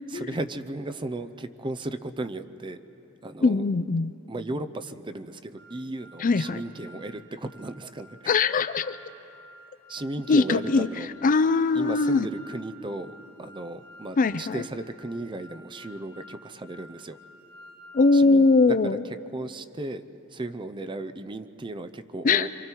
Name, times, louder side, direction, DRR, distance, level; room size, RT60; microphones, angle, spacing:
voice 1, 0.1-2.8 3.2-3.6 4.3-8.4 9.9-11.1 11.7-17.2 18.1-19.0 19.3-20.0 20.3-22.5, right 2 dB, 25° right, 9 dB, 0.6 m, -35 dB
voice 2, 3.4-4.1 6.2-6.6 8.3-9.0 10.3-10.9 11.2-12.3 14.2-14.6 17.9-19.0 22.2-22.5, left 3 dB, 40° left, 14 dB, 0.4 m, -21 dB
sound 1, 5.6-18.3, equal, 55° right, 1.9 m, -51 dB
27.0 x 25.0 x 4.6 m, 3.0 s
head